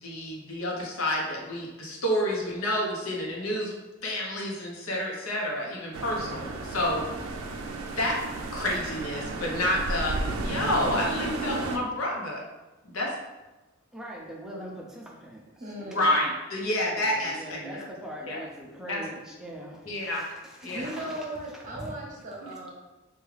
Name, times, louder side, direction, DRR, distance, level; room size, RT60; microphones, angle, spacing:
voice 1, 0.0-3.7 4.0-7.1 8.0-8.1 8.5-10.1 10.4-12.4 12.9-13.1 15.9-17.6 18.3-18.4 18.9-19.0 19.9-20.8 22.4-22.5, left 1 dB, 85° left, -2 dB, 0.8 m, -29 dB
sound 1, 5.9-11.8, right 2 dB, 80° right, 0.4 m, -33 dB
voice 2, 13.9-16.4 16.9-21.3 21.5-22.0, right 1 dB, 5° right, -3 dB, 0.5 m, -42 dB
voice 3, 15.6-16.1 20.6-22.7, right 1 dB, 40° right, -3 dB, 0.8 m, -37 dB
3.5 x 2.3 x 3.2 m, 1.1 s
head